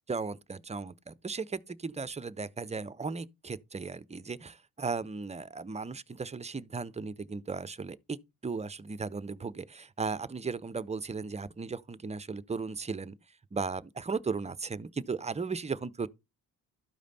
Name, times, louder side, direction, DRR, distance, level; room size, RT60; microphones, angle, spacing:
voice 1, 0.1-8.2 8.4-13.1 13.5-16.1, right 4 dB, 15° right, 0.6 m, -36 dB
12.5 x 5.1 x 4.1 m
figure-of-eight pair, 45°, 43 cm